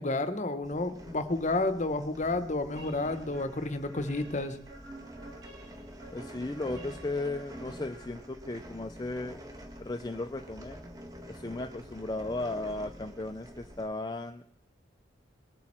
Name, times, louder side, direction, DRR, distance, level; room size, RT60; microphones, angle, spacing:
voice 1, 0.0-4.6, left 2 dB, 35° left, 10 dB, 0.8 m, -31 dB
sound 1, 0.6-13.8, equal, 20° right, 1.7 m, -47 dB
sound 2, 2.8-8.6, right 2 dB, 60° right, 4.2 m, -52 dB
voice 2, 6.1-9.4 9.8-10.8 11.3-14.4, left 2 dB, 20° left, 7 dB, 0.5 m, -36 dB
20.5 x 8.6 x 4.3 m, 0.71 s
head